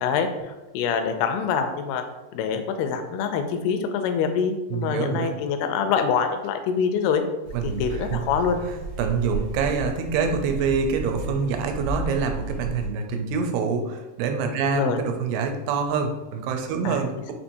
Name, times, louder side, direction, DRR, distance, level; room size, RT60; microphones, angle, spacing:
voice 1, 0.0-2.0 2.3-7.2 7.6-8.6 14.7-15.0 16.8-17.0, left 6 dB, 80° left, 6 dB, 2.2 m, -25 dB
voice 2, 4.7-5.3 7.5-8.2 8.7-17.3, right 5 dB, 85° right, 5 dB, 2.5 m, -26 dB
sound 1, 7.4-12.9, right 4 dB, 70° right, 1.8 m, -33 dB
6.1 x 2.9 x 2.6 m, 1.1 s
omnidirectional pair, 4.4 m